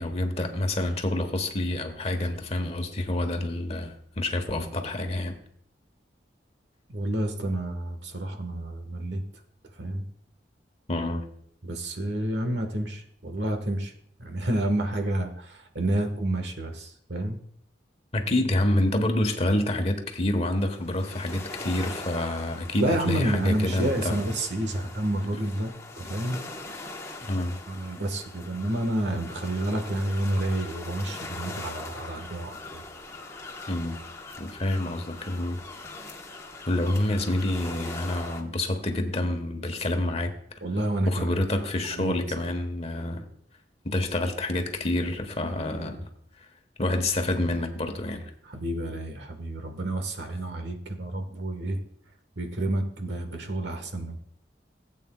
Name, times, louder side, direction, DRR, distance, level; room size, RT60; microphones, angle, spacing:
voice 1, 0.0-5.4 10.9-11.2 18.1-24.2 25.3-25.4 27.3-27.6 33.7-34.0 34.4-35.6 36.7-40.3 41.1-43.2 43.8-46.1 46.8-48.2, left 1 dB, 35° left, 6 dB, 1.2 m, -27 dB
voice 2, 6.9-9.2 9.8-10.0 11.6-13.9 14.2-17.4 22.8-26.4 27.7-32.8 40.6-41.4 41.9-42.2 48.5-51.8 52.4-54.2, right 1 dB, 75° right, 7 dB, 1.4 m, -29 dB
sound 1, 20.6-38.4, left 2 dB, 15° left, 1.1 m, -41 dB
16.5 x 8.4 x 2.3 m, 0.67 s
head